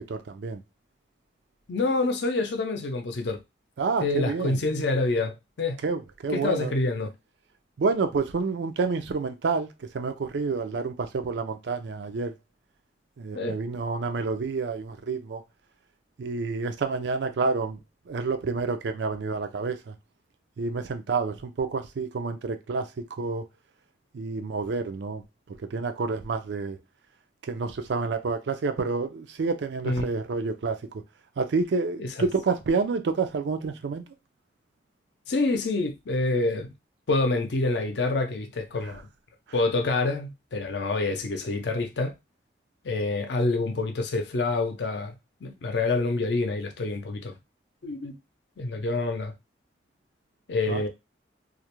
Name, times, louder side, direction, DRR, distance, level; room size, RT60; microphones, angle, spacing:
voice 1, 0.1-0.6 3.8-4.6 5.8-6.7 7.8-12.3 13.2-15.4 16.2-17.8 18.1-19.9 20.6-23.5 24.1-25.2 25.6-26.8 27.4-31.0 31.4-34.0 50.7-50.8, right 4 dB, 80° right, 0.4 m, -29 dB
voice 2, 1.7-3.4 4.0-5.8 6.3-7.1 13.3-13.6 29.8-30.1 32.0-32.3 35.3-36.7 37.1-39.1 39.5-42.1 42.8-45.2 45.4-47.4 47.8-48.1 48.6-49.3 50.5-50.9, left 3 dB, 75° left, 0.5 m, -27 dB
2.4 x 2.0 x 2.9 m
head